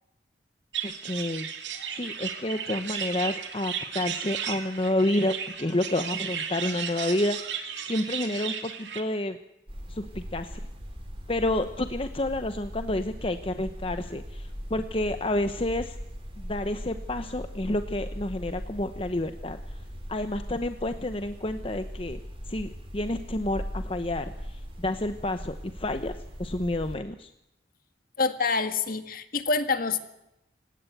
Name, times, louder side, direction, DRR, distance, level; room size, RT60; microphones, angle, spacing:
sound 1, 0.7-9.0, right 8 dB, 85° right, 2.8 m, -34 dB
voice 1, 0.8-1.5 1.9-5.3 5.6-7.4 7.8-9.4 9.9-10.6 11.3-16.0 16.4-19.6 20.1-22.2 22.5-27.3, left 1 dB, 30° left, 9 dB, 1.0 m, -29 dB
sound 2, 9.7-27.0, equal, 30° right, 5.8 m, -39 dB
voice 2, 28.2-30.0, left 4 dB, 55° left, 9 dB, 1.9 m, -26 dB
28.5 x 17.0 x 8.2 m, 0.87 s
head